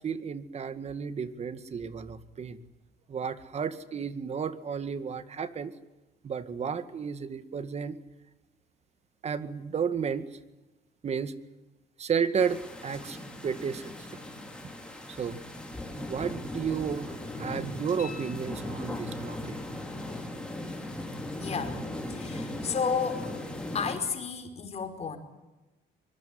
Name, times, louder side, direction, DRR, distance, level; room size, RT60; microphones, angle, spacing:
voice 1, 0.0-2.6 3.1-5.7 6.2-8.0 9.2-10.3 11.0-11.3 12.0-13.2 13.4-13.9 15.1-15.4 16.0-19.6, right 6 dB, 40° right, 12 dB, 2.0 m, -32 dB
sound 1, 12.4-24.0, left 1 dB, 5° left, 5.8 m, -38 dB
sound 2, 18.0-19.3 22.1-22.2, left 6 dB, 55° left, 6.1 m, -49 dB
voice 2, 21.4-23.3 23.7-25.2, left 6 dB, 40° left, 7 dB, 5.0 m, -32 dB
24.0 x 22.0 x 9.5 m, 1.1 s
cardioid pair, 110°, 17 cm